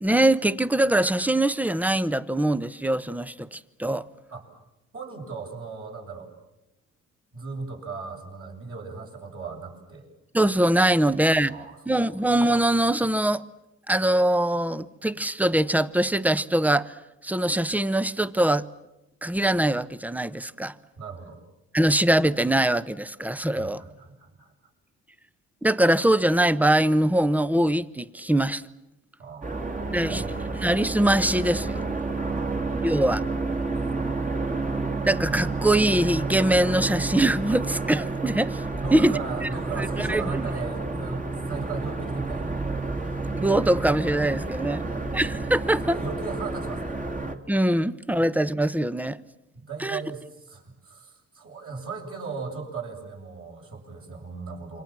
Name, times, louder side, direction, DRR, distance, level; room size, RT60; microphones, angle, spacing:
voice 1, 0.0-4.1 10.3-11.5 11.9-13.5 13.9-16.9 17.2-18.7 19.2-20.7 21.7-23.8 25.6-28.6 29.9-30.3 30.5-31.8 32.8-33.2 35.0-38.6 38.9-39.1 39.7-40.5 43.4-44.9 45.1-45.8 47.5-49.2 49.8-50.0, right 1 dB, 5° right, 0.9 m, -23 dB
voice 2, 4.9-6.3 7.3-10.1 11.0-11.8 12.1-12.2 21.0-21.4 23.5-24.5 29.2-30.6 32.2-33.0 33.9-34.1 38.8-42.6 44.8-45.1 45.8-47.0 49.5-54.8, right 4 dB, 45° right, 7.9 m, -37 dB
sound 1, 29.4-47.3, right 3 dB, 25° right, 2.7 m, -30 dB
28.0 x 24.5 x 7.5 m
cardioid pair, 90°, 30 cm